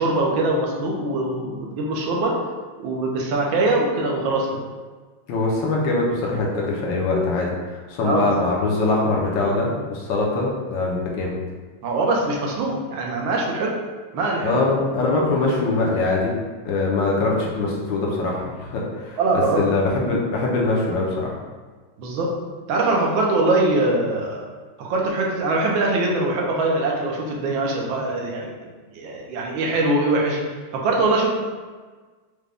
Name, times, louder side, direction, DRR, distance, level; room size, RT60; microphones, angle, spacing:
voice 1, 0.0-2.4 2.8-4.5 8.0-8.3 11.8-13.7 14.1-14.5 19.2-19.7 22.0-22.3 22.7-24.4 24.8-28.5 28.9-30.4 30.7-31.3, right 2 dB, 70° right, -1 dB, 1.4 m, -22 dB
voice 2, 5.3-11.4 14.4-16.3 16.6-19.2 19.6-21.3, left 3 dB, 70° left, -2 dB, 1.2 m, -22 dB
5.1 x 2.2 x 3.3 m, 1.4 s
omnidirectional pair, 2.4 m